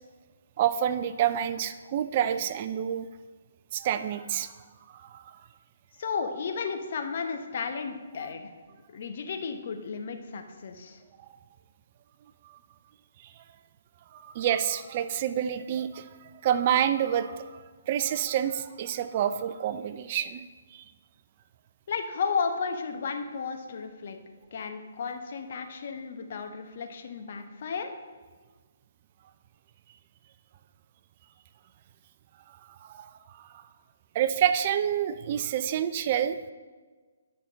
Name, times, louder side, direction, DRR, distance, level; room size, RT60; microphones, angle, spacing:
voice 1, 0.6-3.1 3.7-4.5 5.0-5.2 13.2-13.3 14.1-16.1 16.4-20.4 20.7-20.8 32.8-33.1 33.5-33.6 34.1-36.5, right 10 dB, 40° right, 12 dB, 0.4 m, -28 dB
voice 2, 6.0-8.5 8.9-11.0 21.9-24.2 24.5-27.9, left 5 dB, 55° left, 5 dB, 0.9 m, -33 dB
9.8 x 5.8 x 4.0 m, 1.4 s
figure-of-eight pair, 135°, 0 cm